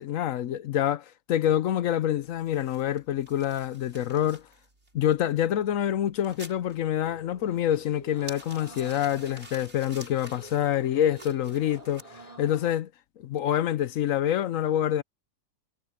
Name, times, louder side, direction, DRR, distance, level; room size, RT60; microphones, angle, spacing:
voice 1, 0.0-4.4 4.9-12.9 13.2-15.0, left 11 dB, 65° left, 0.9 m, -26 dB
sound 1, 2.2-12.0, right 2 dB, 40° right, 4.6 m, -51 dB
sound 2, 7.0-12.7, right 1 dB, 20° right, 6.4 m, -49 dB
omnidirectional pair, 1.8 m